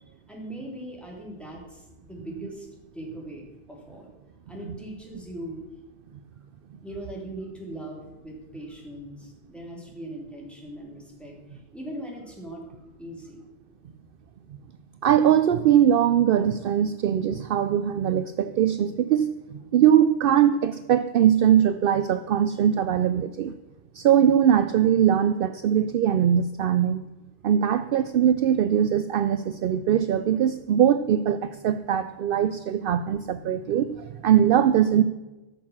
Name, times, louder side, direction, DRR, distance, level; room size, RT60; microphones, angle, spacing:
voice 1, 0.3-2.7 2.9-4.1 4.5-5.6 6.3-6.4 6.8-13.4, right 1 dB, ahead, -2 dB, 3.0 m, -40 dB
voice 2, 15.0-23.5 23.9-27.0 27.4-35.0, right 9 dB, 65° right, 12 dB, 0.7 m, -21 dB
14.0 x 6.5 x 7.2 m, 1.1 s
omnidirectional pair, 1.1 m